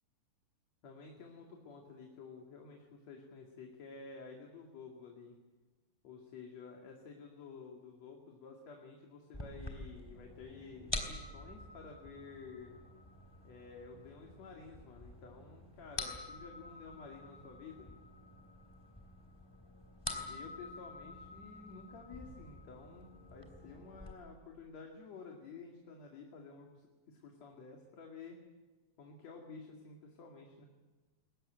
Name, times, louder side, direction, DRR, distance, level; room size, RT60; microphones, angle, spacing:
voice 1, 0.8-5.4 6.0-12.8 13.4-17.9 20.1-28.4 29.0-30.7, left 4 dB, 55° left, 1 dB, 3.4 m, -52 dB
sound 1, 9.3-24.1, left 1 dB, 10° left, 2.8 m, -47 dB
22.0 x 19.5 x 9.1 m, 1.2 s
omnidirectional pair, 3.9 m